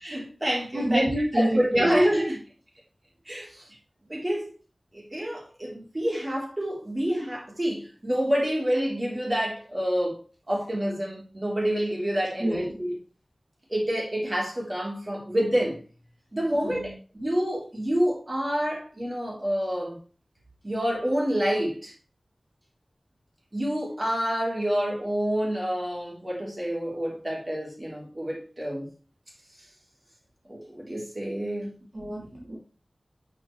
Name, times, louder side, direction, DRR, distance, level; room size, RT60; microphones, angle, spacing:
voice 1, 0.0-1.0 1.3-2.4 3.3-3.6 4.1-4.5 4.9-12.9 13.7-15.8 16.3-19.9 20.6-21.9 23.5-28.9 30.5-31.8, equal, 30° right, 3.7 m, -27 dB
voice 2, 0.7-1.9 12.4-12.8 16.6-17.0 31.9-32.6, right 1 dB, 45° right, 2.8 m, -27 dB
8.7 x 6.2 x 3.3 m
wide cardioid pair, 70°, 0 cm